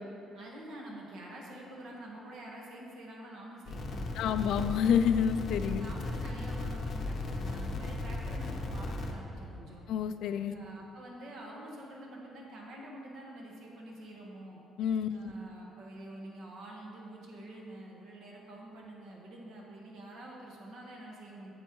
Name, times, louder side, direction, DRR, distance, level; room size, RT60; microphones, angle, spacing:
voice 1, 0.3-4.5 5.8-9.8 10.5-14.6 15.1-21.5, right 1 dB, 65° right, -2 dB, 1.5 m, -47 dB
sound 1, 3.7-9.1, left 2 dB, 40° left, 0.7 m, -36 dB
voice 2, 4.2-5.9 9.9-10.5 14.8-15.3, left 8 dB, 70° left, 10 dB, 0.3 m, -28 dB
8.7 x 8.2 x 3.1 m, 2.7 s
cardioid pair, 160°, 0 cm